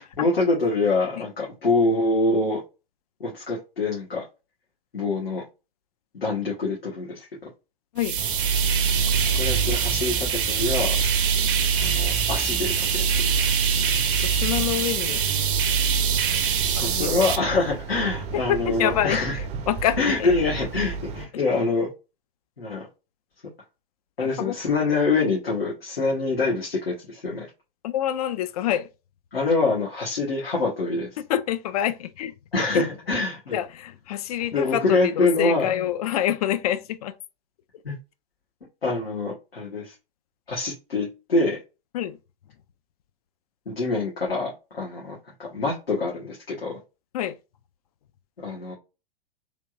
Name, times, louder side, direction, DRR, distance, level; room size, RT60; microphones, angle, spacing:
voice 1, 0.0-2.6 3.2-4.2 4.9-5.4 6.1-7.3 8.9-9.0 9.3-11.0 11.8-13.3 16.8-19.4 20.0-21.9 22.6-22.9 24.2-27.5 29.3-31.1 32.5-33.6 34.5-35.7 37.8-38.0 38.8-39.9 40.5-41.6 43.6-46.8 48.4-48.7, left 3 dB, 80° left, 1.4 m, -25 dB
sound 1, 8.0-17.4, right 7 dB, 60° right, 0.7 m, -23 dB
sound 2, 8.2-21.3, right 4 dB, 20° right, 0.5 m, -34 dB
voice 2, 14.2-15.4 16.7-17.2 18.5-20.3 24.2-24.6 27.8-28.9 31.2-32.3 32.7-32.9 33.5-37.2 41.9-42.2 47.1-47.4, left 11 dB, 40° left, 0.4 m, -27 dB
3.4 x 3.1 x 2.5 m
figure-of-eight pair, 100°, 30 cm